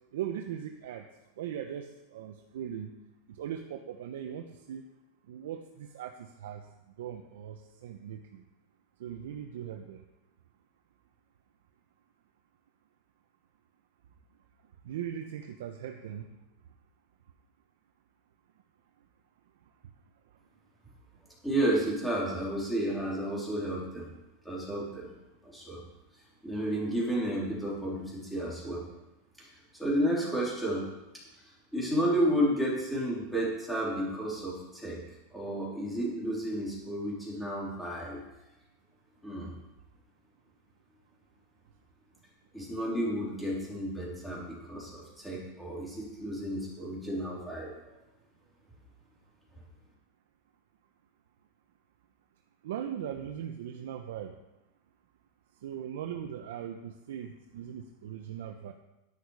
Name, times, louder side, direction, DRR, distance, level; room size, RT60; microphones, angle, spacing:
voice 1, 0.1-1.0 1.4-2.9 3.3-4.8 5.3-6.6 7.0-8.4 9.0-10.0 14.8-16.3 52.6-54.3 55.6-58.7, right 9 dB, 75° right, 5 dB, 0.9 m, -39 dB
voice 2, 21.4-24.1 24.4-25.1 25.4-25.8 26.4-28.8 29.4-29.5 29.8-30.9 31.7-35.0 35.3-38.2 39.2-39.5 42.5-47.7, right 1 dB, ahead, -5 dB, 3.2 m, -31 dB
10.5 x 10.5 x 4.8 m, 0.98 s
supercardioid pair, 170°, 0 cm